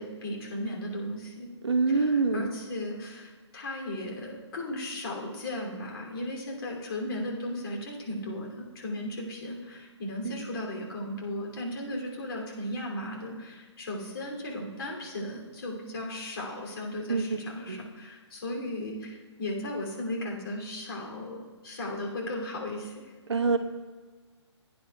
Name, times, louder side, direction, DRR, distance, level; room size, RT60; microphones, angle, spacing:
voice 1, 0.0-1.5 1.9-23.1, left 1 dB, 55° left, -1 dB, 2.7 m, -36 dB
voice 2, 1.6-2.5 10.2-10.4 17.1-17.2 17.7-17.8 23.3-23.6, right 4 dB, 65° right, 7 dB, 0.9 m, -25 dB
16.0 x 9.4 x 2.3 m, 1.4 s
figure-of-eight pair, 145°, 15 cm